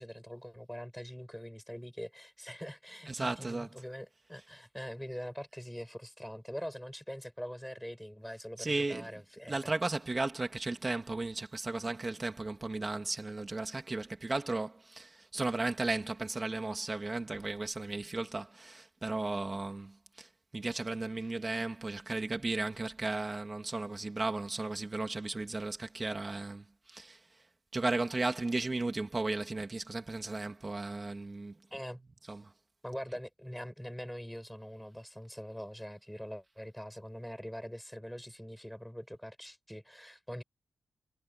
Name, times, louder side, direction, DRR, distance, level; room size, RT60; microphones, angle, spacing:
voice 1, 0.0-9.7 31.7-32.0 32.8-40.4, equal, ahead, 6.3 m, -43 dB
voice 2, 3.1-3.7 8.6-9.1 9.5-27.4 27.7-31.6 32.3-32.5, right 2 dB, 25° right, 3.1 m, -35 dB
wide cardioid pair, 115°, 0 cm